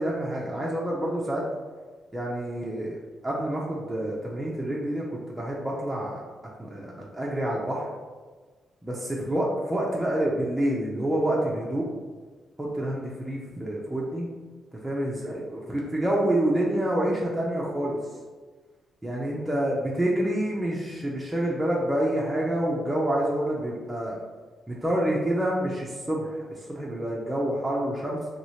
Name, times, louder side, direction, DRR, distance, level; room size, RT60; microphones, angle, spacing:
voice 1, 0.0-1.4 2.1-6.2 6.6-7.9 8.8-11.9 12.6-14.3 14.8-18.0 19.0-24.2 24.7-28.2, right 1 dB, 10° right, -4 dB, 0.5 m, -28 dB
2.9 x 2.7 x 2.8 m, 1.4 s
cardioid pair, 105°, 0 cm